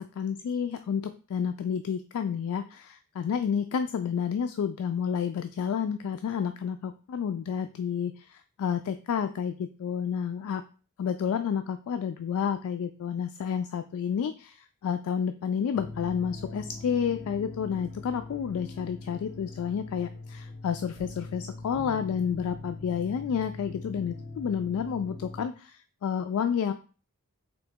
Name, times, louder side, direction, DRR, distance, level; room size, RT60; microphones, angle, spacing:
voice 1, 0.0-10.6 11.0-26.7, left 7 dB, 75° left, 8 dB, 0.3 m, -30 dB
sound 1, 15.7-25.4, left 2 dB, 5° right, 2.0 m, -42 dB
3.9 x 2.7 x 3.5 m, 0.36 s
head